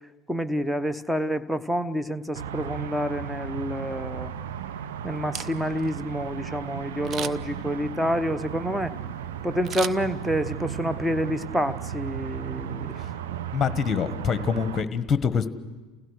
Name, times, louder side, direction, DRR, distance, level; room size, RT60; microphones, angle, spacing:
voice 1, 0.3-4.3 5.0-8.9 9.4-13.0 13.3-13.4, equal, 5° right, 13 dB, 0.9 m, -28 dB
sound 1, 2.4-14.8, right 9 dB, 75° right, 0.9 m, -35 dB
Camera, 5.2-5.9 7.0-7.6 9.6-10.6 11.0-11.1, right 7 dB, 40° right, 0.8 m, -36 dB
voice 2, 13.5-15.5, left 7 dB, 30° left, 12 dB, 1.3 m, -25 dB
29.5 x 16.0 x 6.4 m, 1.3 s
hypercardioid pair, 75°, 0 cm